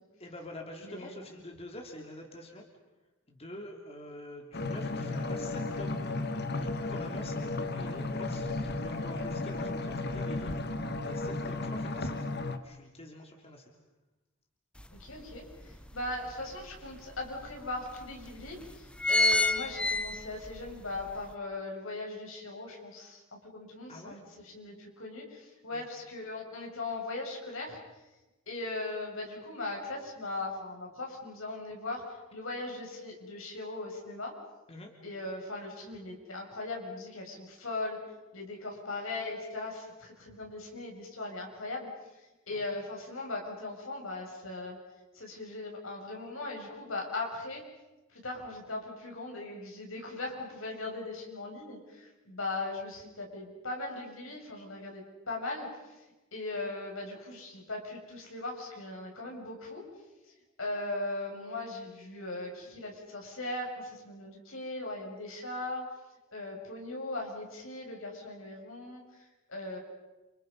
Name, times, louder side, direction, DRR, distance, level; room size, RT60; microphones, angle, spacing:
voice 1, 0.2-2.6 3.3-6.0 6.6-10.6 11.0-12.2 12.6-13.6 23.9-24.2 25.7-25.8 34.7-34.9 42.5-42.6, left 1 dB, 30° left, 2 dB, 3.3 m, -46 dB
voice 2, 0.8-1.3 15.0-23.2 23.5-27.8 28.5-34.3 35.0-38.0 38.3-41.9 42.5-44.8 45.1-47.6 48.1-56.0 56.3-59.8 60.6-65.8 66.3-69.8, left 2 dB, 85° left, 0 dB, 7.2 m, -39 dB
sound 1, 4.5-12.6, left 2 dB, 55° left, 1.7 m, -34 dB
sound 2, 14.8-14.9 15.4-16.5 17.2-17.3 17.5-17.6 18.3-18.5 18.8-20.6 21.0-21.1, left 2 dB, 5° left, 1.0 m, -27 dB
30.0 x 28.5 x 5.5 m, 1.1 s
head